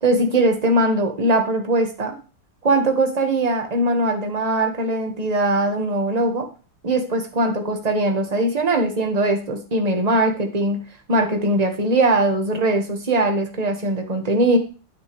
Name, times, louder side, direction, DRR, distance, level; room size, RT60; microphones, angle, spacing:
voice 1, 0.0-2.2 2.6-6.5 6.8-14.6, right 2 dB, 20° right, 4 dB, 1.3 m, -21 dB
9.3 x 9.2 x 3.2 m, 0.35 s
omnidirectional pair, 2.3 m